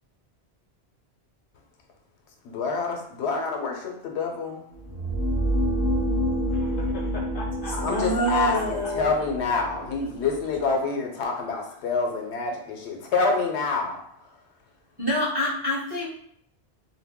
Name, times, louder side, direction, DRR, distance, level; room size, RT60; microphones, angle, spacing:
voice 1, 2.4-4.7 7.7-14.3, left 4 dB, 90° left, 2 dB, 0.9 m, -27 dB
sound 1, 4.7-10.7, equal, 25° left, 0.3 m, -28 dB
voice 2, 6.5-8.9, left 1 dB, 60° left, 1 dB, 0.6 m, -39 dB
voice 3, 7.8-9.2 15.0-16.1, equal, 25° right, -7 dB, 0.6 m, -26 dB
2.2 x 2.1 x 3.4 m, 0.71 s
omnidirectional pair, 1.1 m